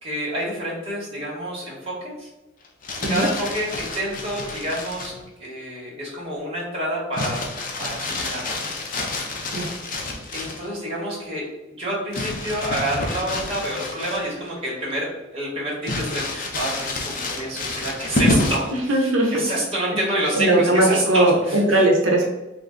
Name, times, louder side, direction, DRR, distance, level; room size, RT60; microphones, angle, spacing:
voice 1, 0.0-2.3 3.1-5.1 5.4-7.4 7.8-8.7 9.9-11.4 11.8-19.0 19.3-21.8, right 1 dB, 30° right, -5 dB, 1.2 m, -28 dB
Crumpling crinkling, 2.6-5.2 7.1-10.7 12.1-14.5 14.9-15.0 15.8-18.8 20.2-20.7, left 2 dB, 40° left, 0.5 m, -28 dB
voice 2, 18.7-19.4 20.3-22.2, right 1 dB, 85° right, 0 dB, 0.6 m, -19 dB
3.2 x 2.4 x 3.6 m, 1.0 s
head